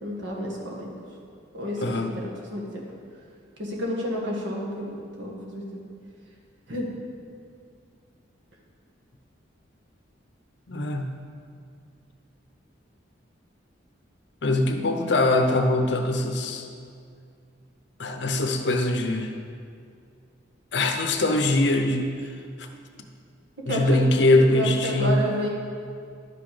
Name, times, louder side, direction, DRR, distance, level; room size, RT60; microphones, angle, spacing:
voice 1, 0.0-0.9 1.5-2.2 2.5-2.8 3.6-4.9 5.2-5.7 6.7-6.9 23.7-24.0 24.5-25.5, equal, 65° right, -2 dB, 1.7 m, -30 dB
voice 2, 1.8-2.1 10.7-11.1 14.4-16.7 18.0-19.3 20.7-22.2 22.6-22.7 23.7-25.3, left 2 dB, 60° left, 5 dB, 0.7 m, -22 dB
11.0 x 5.9 x 5.0 m, 2.3 s
head